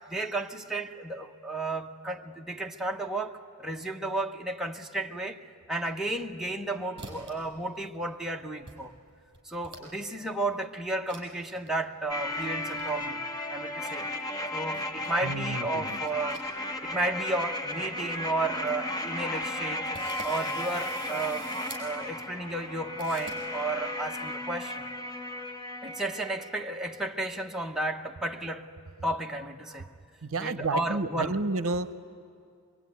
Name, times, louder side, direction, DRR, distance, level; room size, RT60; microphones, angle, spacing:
voice 1, 0.1-5.4 5.7-8.9 9.4-14.1 14.5-16.4 16.8-19.9 20.2-21.5 21.8-24.8 25.8-28.7 29.0-30.0 30.4-31.3, right 2 dB, ahead, 1.0 m, -33 dB
sound 1, 6.0-6.6 7.0-7.5 7.7-8.3 8.7-8.8 9.1-10.1 10.4-10.5 11.1-11.3 11.5-11.7 12.3-12.9 14.1-15.2 15.8-16.9 17.1-17.3 17.8-17.9 18.2-18.3 18.5-18.7 19.2-19.3 19.9-21.9 23.0-23.4, right 2 dB, 20° right, 6.1 m, -46 dB
sound 2, 12.1-27.1 27.4-27.5, left 1 dB, 15° left, 0.9 m, -35 dB
voice 2, 15.2-16.0 30.2-31.9, right 3 dB, 65° right, 0.8 m, -31 dB
24.0 x 23.5 x 9.5 m
head